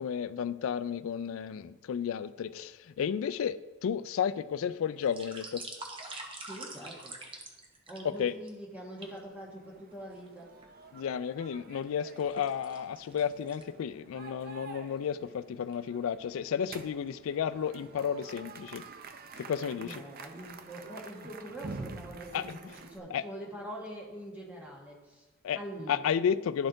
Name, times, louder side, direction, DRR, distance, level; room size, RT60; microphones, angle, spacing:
voice 1, 0.0-5.7 8.0-8.3 10.9-18.8 19.4-20.0 22.3-22.6 23.1-23.2 25.4-25.6 25.9-26.7, left 7 dB, 70° left, 14 dB, 0.3 m, -32 dB
sound 1, 4.9-8.5 9.0-9.2 9.9-10.7 11.2-14.1 14.4-14.5 14.9-15.1 15.5-15.7 16.6-17.1 17.6-17.8 18.1-18.8 19.1-19.2, right 2 dB, 25° right, 0.8 m, -46 dB
voice 2, 6.5-7.1 7.9-10.5 19.8-25.3 25.5-26.1, right 1 dB, 10° right, -4 dB, 1.1 m, -44 dB
sound 2, 8.8-23.0, right 4 dB, 45° right, 0.5 m, -49 dB
11.5 x 4.2 x 3.8 m, 1.2 s
head